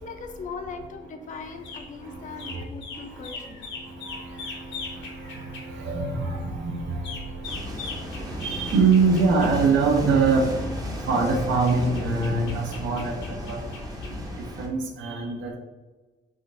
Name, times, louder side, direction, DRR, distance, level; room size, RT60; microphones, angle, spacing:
voice 1, 0.0-3.7, left 5 dB, 40° left, 6 dB, 0.4 m, -39 dB
sound 1, 1.3-14.2, left 4 dB, 70° left, 0.8 m, -42 dB
voice 2, 2.0-2.6 2.9-10.6 11.0-13.6 14.4-15.6, right 4 dB, 75° right, 1 dB, 0.7 m, -25 dB
sound 2, 7.4-14.7, equal, 20° right, 0.6 m, -34 dB
3.7 x 2.4 x 2.6 m, 1.2 s
cardioid pair, 110°, 20 cm